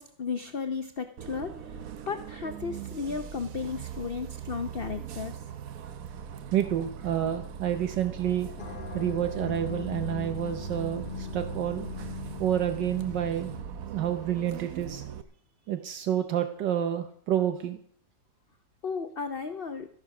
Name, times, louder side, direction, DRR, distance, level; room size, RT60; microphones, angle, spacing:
voice 1, 0.0-1.8 2.1-5.4 18.8-19.9, left 5 dB, 70° left, 8 dB, 0.5 m, -34 dB
Bus, 1.2-15.2, right 8 dB, 60° right, 1.0 m, -41 dB
voice 2, 6.5-8.5 8.9-11.9 12.4-13.5 13.9-15.0 15.7-17.8, right 10 dB, 75° right, 8 dB, 1.4 m, -29 dB
sound 1, 8.6-13.6, left 4 dB, 35° left, 0.8 m, -39 dB
13.5 x 10.5 x 5.9 m, 0.62 s
omnidirectional pair, 2.0 m